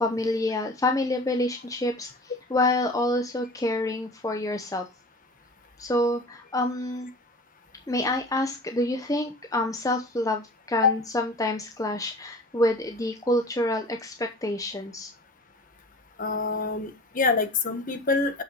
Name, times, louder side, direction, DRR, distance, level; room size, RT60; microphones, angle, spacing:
voice 1, 0.0-2.1 2.5-4.9 5.8-7.1 7.9-15.1, left 1 dB, 15° left, 3 dB, 0.8 m, -27 dB
voice 2, 16.2-18.4, left 4 dB, 40° left, 7 dB, 1.2 m, -25 dB
7.5 x 5.5 x 4.7 m, 0.24 s
head